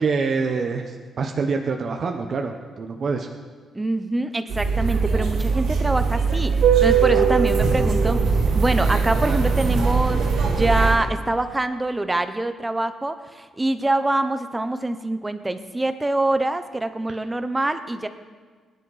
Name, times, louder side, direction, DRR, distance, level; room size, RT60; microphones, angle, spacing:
voice 1, 0.0-3.3 4.9-5.0, right 4 dB, 45° right, 3 dB, 1.0 m, -26 dB
voice 2, 3.7-8.2 8.5-18.1, right 2 dB, 10° right, 10 dB, 0.8 m, -25 dB
sound 1, 4.5-11.0, right 5 dB, 85° right, 3.4 m, -20 dB
22.0 x 10.5 x 4.1 m, 1.5 s
cardioid pair, 150°, 0 cm